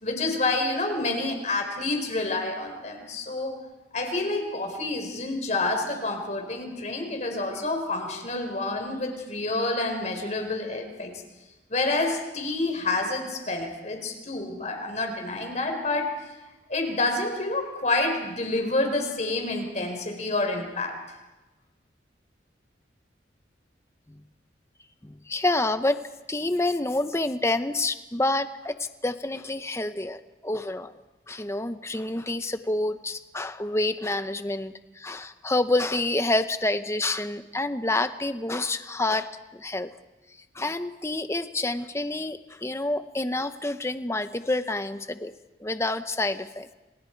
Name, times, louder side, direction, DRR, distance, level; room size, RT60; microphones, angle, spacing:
voice 1, 0.0-3.6 3.9-11.2 11.7-16.1 16.7-20.9, left 2 dB, 40° left, 4 dB, 4.5 m, -28 dB
voice 2, 25.0-26.0 26.3-30.9 31.3-39.9 40.5-45.3 45.6-46.7, left 2 dB, 15° left, 10 dB, 0.9 m, -28 dB
29.5 x 27.5 x 4.7 m, 1.1 s
head